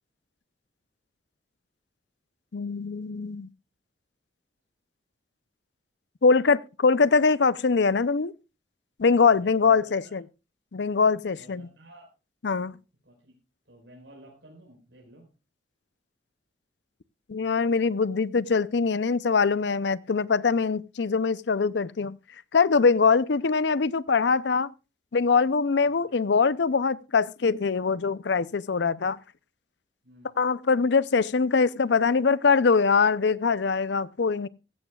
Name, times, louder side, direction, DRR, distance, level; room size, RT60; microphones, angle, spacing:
voice 1, 2.5-3.5 6.2-8.3 9.0-10.2 10.7-11.7 12.4-12.8 17.3-22.2 22.5-24.7 25.1-29.2 30.4-34.5, left 5 dB, 70° left, 0.6 m, -23 dB
voice 2, 9.3-10.2 11.3-12.1 12.6-12.7 13.0-13.3 13.6-15.3 25.9-26.1 30.0-30.4, right 1 dB, 75° right, 4.9 m, -52 dB
16.0 x 14.5 x 2.3 m
head